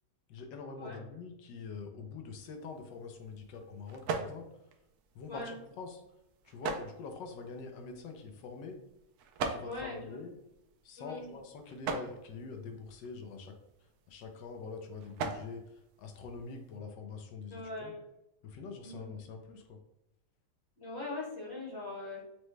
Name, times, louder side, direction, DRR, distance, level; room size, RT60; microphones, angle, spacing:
voice 1, 0.3-4.4 5.1-6.0 6.4-8.8 9.4-10.4 10.8-13.5 13.8-17.9 18.4-19.8, left 4 dB, 85° left, 4 dB, 1.3 m, -45 dB
sound 1, 2.4-16.8, right 5 dB, 70° right, 1.0 m, -43 dB
voice 2, 9.6-10.0 11.0-11.3 17.5-18.0 18.8-19.1 20.8-22.2, left 2 dB, 45° left, -3 dB, 1.1 m, -41 dB
6.1 x 2.2 x 3.1 m, 0.86 s
omnidirectional pair, 1.9 m